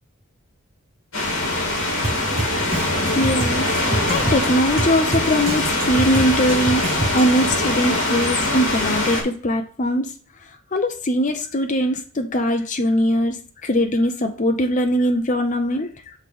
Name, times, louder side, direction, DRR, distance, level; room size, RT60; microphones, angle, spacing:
sound 1, 1.1-9.2, left 2 dB, 75° left, 2.5 m, -23 dB
Drum kit, 2.0-7.5, right 2 dB, 30° right, 0.7 m, -28 dB
voice 1, 3.1-3.7 4.1-6.8 7.1-10.1 10.7-13.4 13.6-16.1, equal, 35° left, 5 dB, 0.6 m, -21 dB
8.1 x 3.1 x 5.3 m, 0.42 s
head